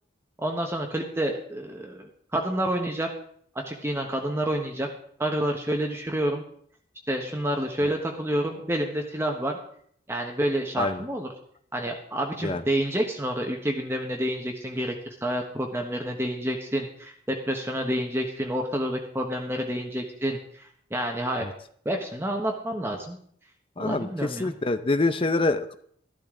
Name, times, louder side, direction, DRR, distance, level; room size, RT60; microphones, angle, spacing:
voice 1, 0.4-3.1 3.7-4.9 5.2-6.4 7.1-9.5 10.1-11.3 11.7-15.0 15.2-21.4 21.8-23.2 23.8-24.5, right 1 dB, 15° right, 2 dB, 1.2 m, -28 dB
voice 2, 23.8-25.7, left 2 dB, 30° left, 11 dB, 0.6 m, -26 dB
13.5 x 12.0 x 3.8 m, 0.62 s
head